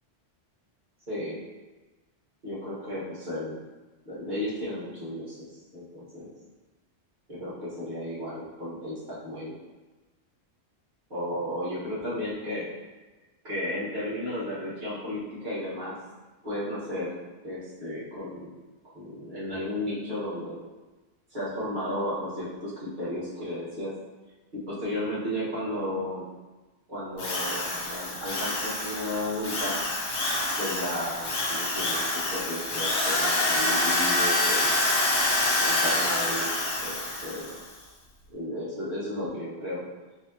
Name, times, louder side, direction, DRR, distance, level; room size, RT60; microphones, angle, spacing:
voice 1, 1.1-1.4 2.4-3.6 4.0-5.5 5.7-6.3 7.3-9.5 11.1-12.7 13.4-16.0 16.4-17.1 17.4-18.5 18.9-20.6 21.3-23.9 24.5-26.3 26.9-29.8 30.6-34.8 35.6-37.6 38.3-39.8, left 1 dB, 45° right, -10 dB, 1.5 m, -34 dB
Drill, 27.2-37.6, left 2 dB, 55° left, 0.9 m, -27 dB
4.6 x 2.9 x 2.8 m, 1.2 s
omnidirectional pair, 1.2 m